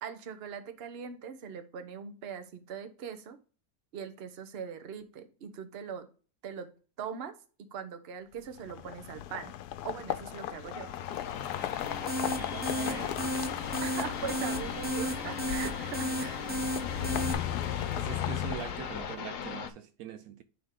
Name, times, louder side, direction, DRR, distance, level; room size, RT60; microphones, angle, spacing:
voice 1, 0.0-3.4 3.9-6.1 6.4-6.7 7.0-7.3 7.6-9.5 9.8-10.9 13.8-16.5, right 7 dB, 50° right, 0.9 m, -41 dB
sound 1, 8.6-19.4, left 11 dB, 85° left, 1.1 m, -36 dB
sound 2, 10.6-19.7, left 7 dB, 65° left, 1.1 m, -39 dB
sound 3, 11.8-17.3, right 1 dB, 15° right, 0.3 m, -35 dB
voice 2, 12.2-13.3 17.2-17.4 18.0-20.4, right 10 dB, 75° right, 1.0 m, -43 dB
9.4 x 3.6 x 3.6 m
omnidirectional pair, 1.6 m